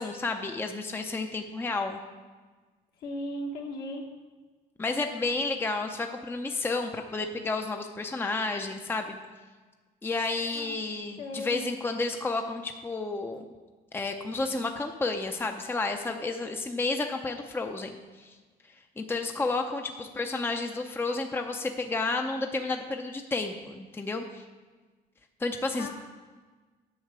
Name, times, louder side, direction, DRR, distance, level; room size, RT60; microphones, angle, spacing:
voice 1, 0.0-2.0 4.8-9.2 10.0-13.4 13.9-18.3 19.0-24.4 25.4-25.9, left 3 dB, 15° left, 5 dB, 0.6 m, -31 dB
voice 2, 3.0-4.0 10.5-10.7 11.2-11.6 20.5-20.6 25.7-25.9, left 1 dB, 70° left, 0 dB, 1.7 m, -36 dB
8.1 x 5.6 x 7.5 m, 1.3 s
cardioid pair, 110°, 17 cm